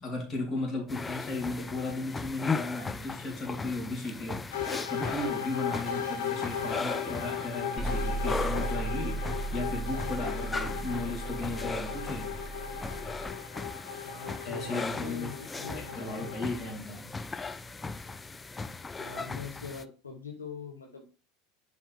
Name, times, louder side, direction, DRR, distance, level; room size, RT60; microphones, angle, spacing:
voice 1, 0.0-12.3 14.4-15.3 15.7-17.0, left 2 dB, 35° left, 3.7 m, -36 dB
sound 1, 0.9-19.8, left 4 dB, 15° left, 0.4 m, -38 dB
sound 2, 4.5-16.6, left 7 dB, 75° left, 1.4 m, -37 dB
sound 3, 7.8-13.3, right 2 dB, 10° right, 0.9 m, -36 dB
voice 2, 14.0-16.3 19.0-21.1, left 5 dB, 90° left, 1.1 m, -42 dB
7.1 x 5.1 x 3.5 m
hypercardioid pair, 80°, 0 cm